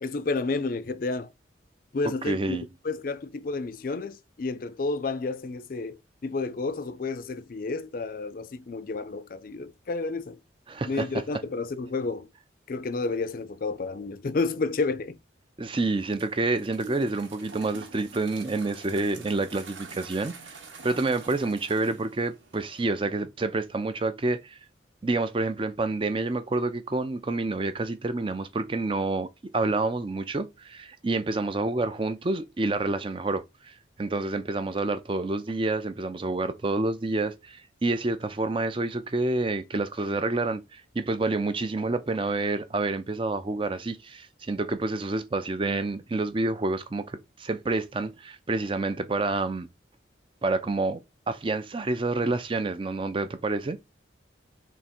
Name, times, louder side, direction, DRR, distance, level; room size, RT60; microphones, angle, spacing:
voice 1, 0.0-1.3 1.9-6.0 6.2-10.4 10.8-12.3 12.7-15.2, left 3 dB, 45° left, 0.4 m, -31 dB
voice 2, 2.3-2.6 10.7-11.2 15.6-20.6 20.8-24.6 25.0-29.3 29.5-49.7 50.4-51.0 51.3-53.8, right 2 dB, 25° right, 0.4 m, -28 dB
sound 1, 15.8-22.9, right 4 dB, 75° right, 1.1 m, -47 dB
3.6 x 3.0 x 4.3 m
head